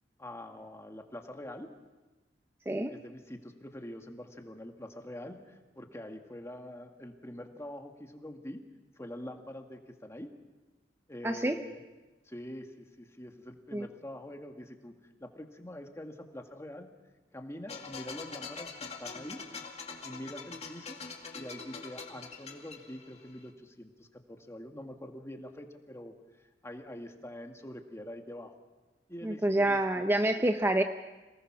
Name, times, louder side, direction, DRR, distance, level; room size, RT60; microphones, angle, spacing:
voice 1, 0.2-1.7 2.9-8.6 9.0-10.3 11.1-11.8 12.3-14.9 15.2-16.9 17.3-19.4 20.0-21.0 21.3-28.5 29.1-30.0, left 1 dB, 15° left, 4 dB, 1.8 m, -45 dB
voice 2, 11.2-11.6 13.7-13.9 29.2-30.8, right 1 dB, 15° right, 6 dB, 0.8 m, -27 dB
sound 1, 17.7-23.4, left 5 dB, 40° left, 2.3 m, -44 dB
27.5 x 19.0 x 6.1 m, 1.2 s
head